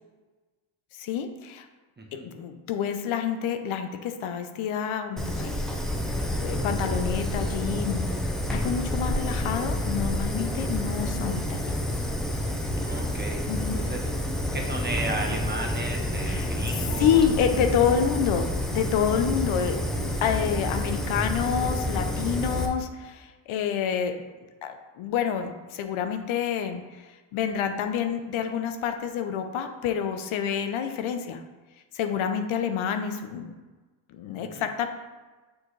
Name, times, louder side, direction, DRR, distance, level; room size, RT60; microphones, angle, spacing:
voice 1, 1.0-1.7 2.2-5.5 6.4-8.1 8.5-11.8 13.5-13.8 16.2-16.5 17.0-24.1 24.6-26.8 27.3-31.4 31.9-33.5 34.1-34.9, left 8 dB, 75° left, 7 dB, 0.8 m, -28 dB
voice 2, 2.0-2.3 12.8-13.4 13.8-14.1 14.5-17.2 34.4-34.6, right 2 dB, 20° right, 1 dB, 1.1 m, -34 dB
Fire, 5.2-22.7, left 1 dB, ahead, 0.8 m, -29 dB
sound 1, 12.7-22.0, left 2 dB, 55° left, 1.3 m, -48 dB
6.1 x 4.9 x 3.2 m, 1.2 s
cardioid pair, 80°, 49 cm